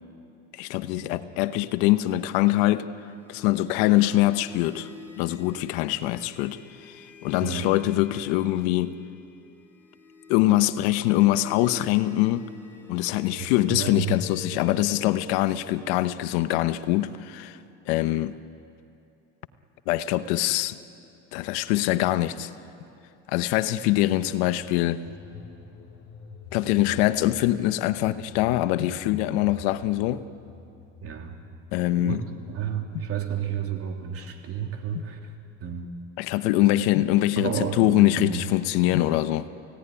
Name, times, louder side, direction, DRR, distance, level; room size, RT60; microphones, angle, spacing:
voice 1, 0.5-2.9 3.3-4.9 5.2-6.6 6.9-7.0 7.2-9.0 10.3-12.5 12.9-17.6 17.9-18.4 19.9-20.8 21.3-22.5 23.3-25.0 26.5-30.3 31.7-32.2 36.2-39.5, left 15 dB, 80° left, 1.0 m, -23 dB
sound 1, 2.9-17.9, left 5 dB, 5° left, 6.2 m, -48 dB
voice 2, 13.4-14.2 31.0-31.4 32.0-32.2 32.5-35.3 35.6-35.9 37.4-38.4, right 7 dB, 45° right, 3.1 m, -31 dB
sound 2, 25.0-34.9 35.2-35.3, left 5 dB, 45° left, 6.5 m, -47 dB
28.5 x 17.5 x 10.0 m
supercardioid pair, 115°, 31 cm